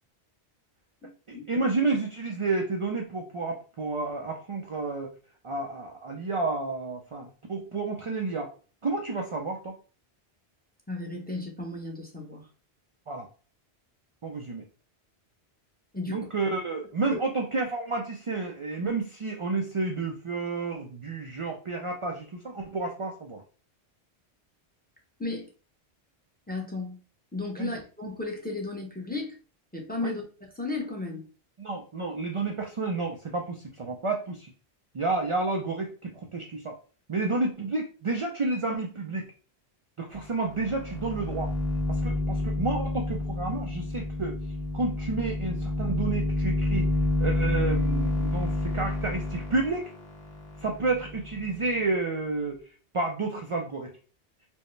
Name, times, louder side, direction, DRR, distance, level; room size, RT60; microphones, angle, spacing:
voice 1, 1.3-5.1 5.4-8.5 8.8-9.8 13.1-13.3 14.2-14.6 16.1-23.4 27.6-27.7 30.0-30.2 31.6-34.5 34.9-36.8 37.1-39.3 40.0-41.5 41.9-44.4 44.7-46.9 47.2-49.9 50.6-52.6 52.9-53.9, right 3 dB, 50° right, 2 dB, 0.4 m, -30 dB
voice 2, 10.9-12.4 15.9-16.3 17.1-17.2 25.2-25.5 26.5-27.0 27.3-29.4 29.7-30.2 30.6-31.2, left 3 dB, 10° left, 0 dB, 0.7 m, -34 dB
sound 1, 40.1-40.2 40.5-51.6, left 2 dB, 65° left, 1.2 m, -29 dB
4.4 x 2.1 x 3.2 m, 0.37 s
omnidirectional pair, 1.1 m